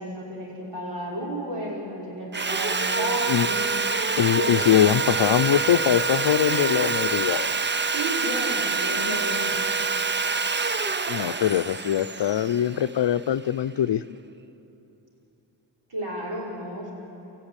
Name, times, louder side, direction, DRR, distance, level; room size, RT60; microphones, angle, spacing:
voice 1, 0.0-3.7 4.4-4.8 6.5-6.8 7.9-9.6 15.9-16.9, equal, 75° right, -4 dB, 5.9 m, -33 dB
Sawing, 2.3-13.4, right 4 dB, 25° right, 0.6 m, -26 dB
voice 2, 4.2-7.5 11.1-14.0, left 10 dB, 70° left, 13 dB, 0.7 m, -22 dB
28.5 x 14.0 x 9.9 m, 3.0 s
cardioid pair, 80°, 45 cm